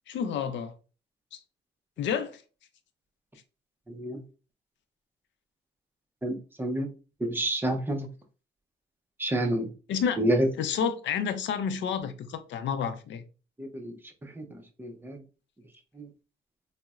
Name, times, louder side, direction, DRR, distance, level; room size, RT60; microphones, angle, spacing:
voice 1, 0.1-0.7 1.3-1.4 2.0-2.4 9.9-10.2 10.6-13.2, left 7 dB, 65° left, 0.5 m, -30 dB
voice 2, 3.9-4.2 6.2-6.9 7.2-8.1 9.2-9.7 10.2-10.5 13.6-13.9 14.2-15.2 16.0-16.1, right 1 dB, 10° right, 0.5 m, -29 dB
3.8 x 2.0 x 2.3 m
cardioid pair, 90°, 20 cm